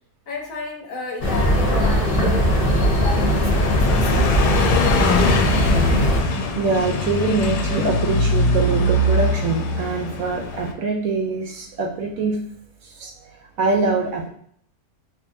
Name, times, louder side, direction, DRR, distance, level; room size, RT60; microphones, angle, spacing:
voice 1, 0.3-4.8, left 3 dB, 65° left, 0 dB, 1.0 m, -33 dB
sound 1, 1.2-6.2, equal, 40° left, 1.0 m, -19 dB
Car passing by, 2.3-10.7, left 2 dB, 85° left, 1.2 m, -22 dB
voice 2, 6.5-12.5 12.8-14.3, right 3 dB, 70° right, 2 dB, 1.0 m, -24 dB
4.6 x 2.5 x 2.6 m, 0.63 s
omnidirectional pair, 1.7 m